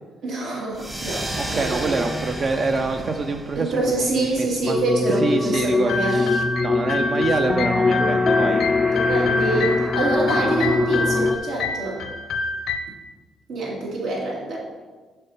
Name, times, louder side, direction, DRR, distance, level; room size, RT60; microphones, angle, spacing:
voice 1, 0.2-2.0 3.6-6.2 8.9-12.0 13.5-14.6, right 2 dB, 75° right, -4 dB, 2.3 m, -25 dB
sound 1, 0.7-5.8, right 1 dB, 20° right, 1.1 m, -33 dB
voice 2, 1.3-4.8 5.1-8.6 10.3-10.5, right 3 dB, 45° right, 5 dB, 0.5 m, -26 dB
sound 2, 4.6-11.4, left 4 dB, 25° left, 0.3 m, -22 dB
sound 3, 5.5-12.8, left 2 dB, 70° left, 0.6 m, -27 dB
6.7 x 4.5 x 5.7 m, 1.3 s
cardioid pair, 90°, 0 cm